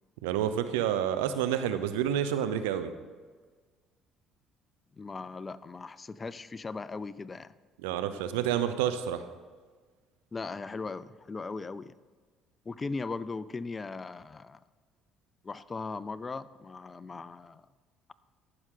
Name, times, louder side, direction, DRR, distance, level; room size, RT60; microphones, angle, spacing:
voice 1, 0.2-2.9 7.8-9.2, right 10 dB, 85° right, 11 dB, 0.6 m, -29 dB
voice 2, 5.0-7.5 10.3-11.9 12.7-14.6 15.4-17.6, left 4 dB, 30° left, 17 dB, 0.4 m, -38 dB
14.5 x 6.2 x 3.8 m, 1.4 s
hypercardioid pair, 65°, 0 cm